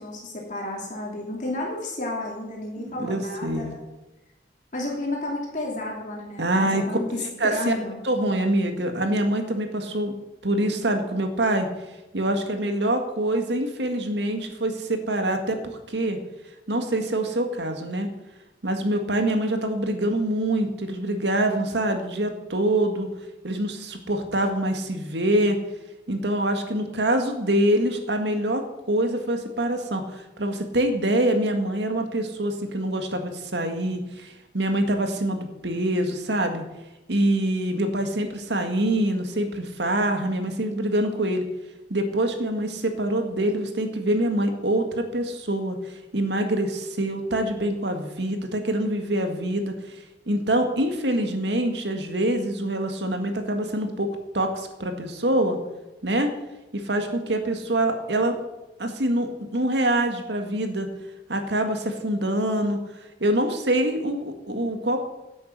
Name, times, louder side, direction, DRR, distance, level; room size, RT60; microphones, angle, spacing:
voice 1, 0.0-3.8 4.7-8.0, left 1 dB, 45° left, -2 dB, 2.9 m, -32 dB
voice 2, 2.8-3.7 6.4-6.8 7.4-7.8 8.0-10.1 10.4-11.7 12.1-15.6 15.9-16.2 16.7-18.1 18.6-23.1 23.4-25.6 26.1-28.6 28.9-36.6 37.1-41.4 41.9-50.0 50.3-54.1 54.3-55.6 56.0-56.3 56.7-58.3 58.8-60.9 61.3-62.8 63.2-65.0, right 1 dB, 70° right, 5 dB, 1.9 m, -25 dB
11.5 x 8.6 x 8.1 m, 1.0 s
head